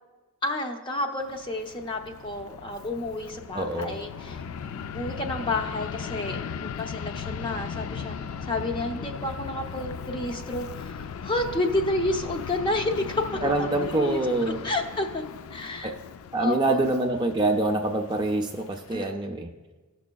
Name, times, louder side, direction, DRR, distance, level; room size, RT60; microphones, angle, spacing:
voice 1, 0.4-4.4 4.7-8.2 8.4-13.5 13.9-14.2 14.6-15.2 15.5-15.9 16.4-16.8 18.9-19.4, left 2 dB, 20° left, 3 dB, 0.6 m, -30 dB
Fixed-wing aircraft airplane, 1.2-19.0, left 6 dB, 75° left, 0.3 m, -38 dB
voice 2, 3.5-4.0 13.4-14.6 15.8-16.0 16.3-19.5, right 2 dB, 20° right, 3 dB, 0.4 m, -25 dB
17.0 x 6.1 x 2.2 m, 1.2 s
head